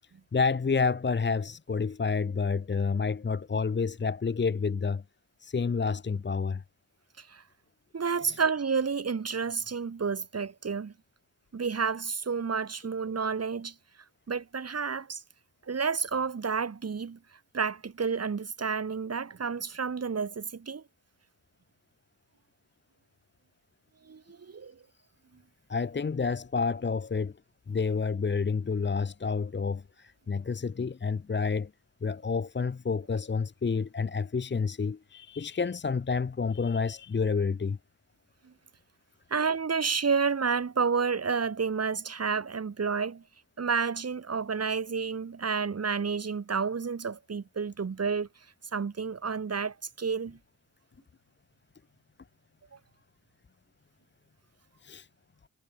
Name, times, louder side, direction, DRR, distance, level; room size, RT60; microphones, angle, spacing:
voice 1, 0.3-5.0 5.4-6.6 8.3-8.4 25.7-27.4 27.7-31.7 32.0-37.8 54.8-55.1, left 5 dB, 35° left, 0.9 m, -29 dB
voice 2, 7.9-10.9 11.5-13.7 14.3-15.2 15.7-17.2 17.5-20.8 24.1-24.8 38.4-38.5 39.3-43.2 43.6-48.3 48.7-50.4, right 5 dB, 50° right, 1.8 m, -30 dB
cardioid pair, 55°, 33 cm